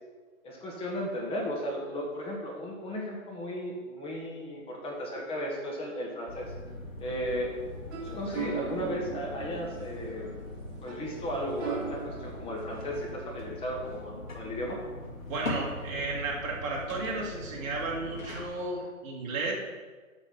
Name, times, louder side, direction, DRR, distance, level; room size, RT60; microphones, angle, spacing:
voice 1, 0.4-6.5 7.0-7.5 8.0-10.4 10.8-14.8, equal, 15° left, -3 dB, 1.5 m, -35 dB
sound 1, 6.3-18.5, left 1 dB, 80° left, 2.3 m, -41 dB
sound 2, 7.6-13.1, right 6 dB, 10° right, 0.6 m, -40 dB
voice 2, 15.3-19.5, right 3 dB, 25° right, -3 dB, 2.3 m, -33 dB
8.9 x 6.1 x 5.7 m, 1.4 s
figure-of-eight pair, 130°, 40 cm